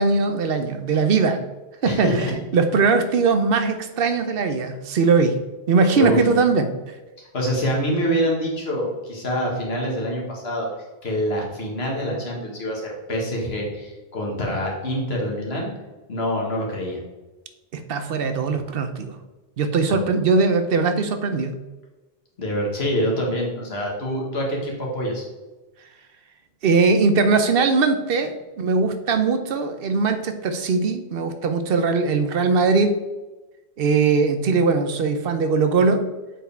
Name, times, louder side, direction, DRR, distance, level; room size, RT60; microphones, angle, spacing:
voice 1, 0.0-1.4 1.8-2.3 2.5-5.4 5.7-7.0 17.7-19.2 19.6-21.6 26.6-33.0 33.8-36.1, right 4 dB, 70° right, 8 dB, 0.8 m, -20 dB
voice 2, 1.9-2.3 6.0-6.2 7.3-10.7 11.0-15.7 16.1-17.0 19.9-20.0 22.4-25.2, equal, 80° left, -2 dB, 1.9 m, -25 dB
7.4 x 4.7 x 3.4 m, 1.1 s
omnidirectional pair, 1.0 m